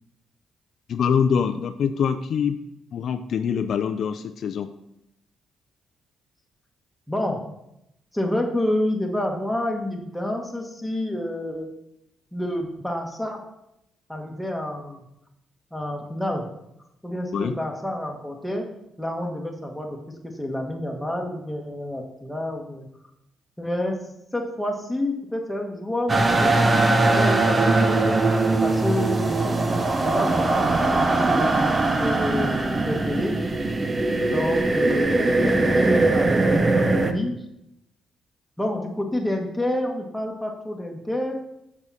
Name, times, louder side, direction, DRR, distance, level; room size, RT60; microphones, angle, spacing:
voice 1, 0.9-2.6 2.9-4.7 17.3-17.6 34.1-34.3, left 7 dB, 65° left, 9 dB, 0.4 m, -24 dB
voice 2, 7.1-7.4 8.1-11.7 12.3-13.4 14.1-15.0 15.7-16.5 17.0-18.7 19.0-22.9 23.6-24.0 24.3-28.2 28.6-31.5 32.0-33.3 34.2-37.3 38.6-41.4, left 1 dB, 5° left, 1 dB, 1.6 m, -29 dB
sound 1, 26.1-37.1, right 2 dB, 30° right, 0.8 m, -21 dB
6.9 x 6.0 x 4.2 m, 0.82 s
cardioid pair, 90°, 0 cm